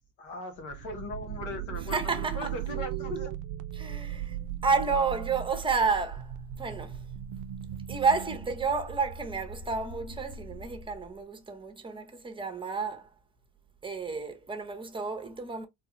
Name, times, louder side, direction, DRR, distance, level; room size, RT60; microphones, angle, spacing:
voice 1, 0.2-3.3, left 2 dB, 90° left, 1.1 m, -39 dB
sound 1, 0.6-11.2, right 10 dB, 50° right, 0.5 m, -38 dB
voice 2, 1.9-2.5 3.8-4.4 4.6-7.1 7.9-13.1 13.8-15.7, right 4 dB, 15° right, 0.7 m, -30 dB
3.3 x 2.2 x 3.0 m
cardioid pair, 90°, 39 cm